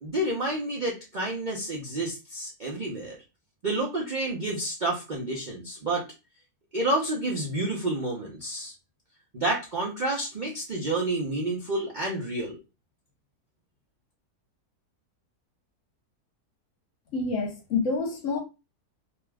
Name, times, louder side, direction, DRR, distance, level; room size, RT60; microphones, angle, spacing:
voice 1, 0.0-3.2 3.6-6.0 6.7-8.7 9.3-12.6, right 2 dB, 55° right, 0.5 m, -29 dB
voice 2, 17.1-18.4, left 4 dB, 60° left, 1.0 m, -27 dB
2.7 x 2.3 x 3.3 m
omnidirectional pair, 1.7 m